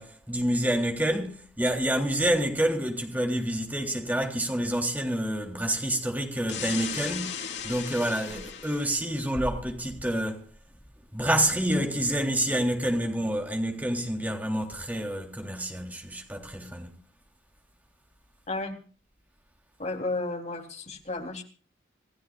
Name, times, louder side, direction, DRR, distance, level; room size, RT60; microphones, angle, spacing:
voice 1, 0.0-10.4 11.1-16.9, right 1 dB, 10° right, 3.5 m, -28 dB
sound 1, 6.5-9.0, left 7 dB, 75° left, 3.7 m, -36 dB
voice 2, 19.8-21.4, left 2 dB, 40° left, 3.5 m, -33 dB
28.0 x 16.0 x 2.5 m
head